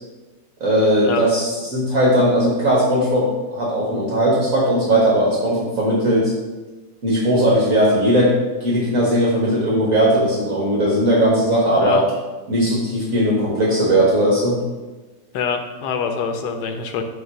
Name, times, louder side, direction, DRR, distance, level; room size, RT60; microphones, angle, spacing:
voice 1, 0.6-6.3 7.0-8.3 8.6-12.0 12.5-14.6, equal, 55° right, -4 dB, 1.6 m, -18 dB
voice 2, 15.3-17.0, left 6 dB, 75° left, 6 dB, 1.3 m, -25 dB
7.5 x 3.0 x 5.7 m, 1.2 s
omnidirectional pair, 1.8 m